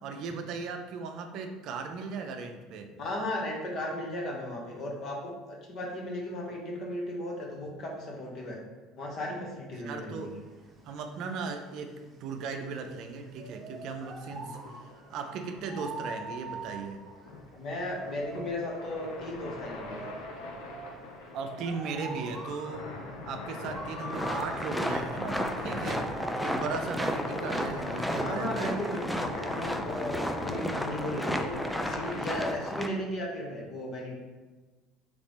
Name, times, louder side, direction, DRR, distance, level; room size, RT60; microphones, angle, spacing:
voice 1, 0.0-2.9 9.7-10.3 10.8-11.9 12.2-17.0 21.3-22.9 23.3-26.1 26.4-28.9, right 4 dB, 60° right, 5 dB, 0.5 m, -37 dB
voice 2, 3.0-8.6 9.0-10.4 14.4-14.5 17.5-20.1 28.2-34.2, left 1 dB, 55° left, -1 dB, 1.2 m, -36 dB
sound 1, 10.2-28.2, right 2 dB, 25° right, 1.0 m, -45 dB
sound 2, 13.9-32.2, left 2 dB, 80° left, 0.7 m, -42 dB
sound 3, 24.1-32.9, equal, ahead, 0.4 m, -33 dB
4.0 x 3.2 x 3.4 m, 1.2 s
hypercardioid pair, 75°, 0 cm